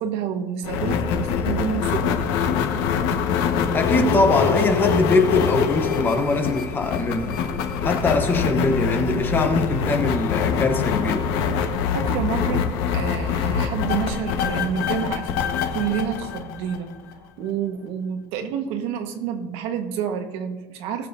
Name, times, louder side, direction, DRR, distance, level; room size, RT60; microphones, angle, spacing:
voice 1, 0.0-2.1 11.9-15.4 15.7-16.9 17.4-21.1, right 8 dB, 60° right, 5 dB, 1.4 m, -28 dB
sound 1, 0.6-17.1, left 6 dB, 80° left, 1.3 m, -24 dB
voice 2, 3.7-7.4 7.8-11.3, left 3 dB, 20° left, 5 dB, 0.9 m, -22 dB
20.0 x 7.3 x 2.7 m, 1.2 s
cardioid pair, 175°, 11 cm